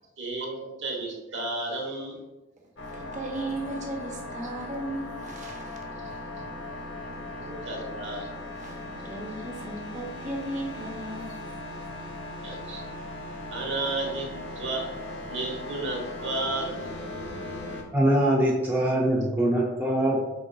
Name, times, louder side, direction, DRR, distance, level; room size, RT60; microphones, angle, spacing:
voice 1, 0.2-2.2 7.1-8.3 12.4-12.8 13.5-14.3 14.5-14.8 15.3-16.9, right 2 dB, 70° right, -1 dB, 1.0 m, -32 dB
sound 1, 2.8-17.8, left 1 dB, 70° left, 0.7 m, -38 dB
voice 2, 2.8-6.2 8.5-11.3, right 1 dB, 40° right, 0 dB, 0.8 m, -36 dB
voice 3, 17.9-20.2, right 1 dB, 10° right, -4 dB, 0.4 m, -23 dB
5.2 x 3.7 x 2.2 m, 1.1 s
head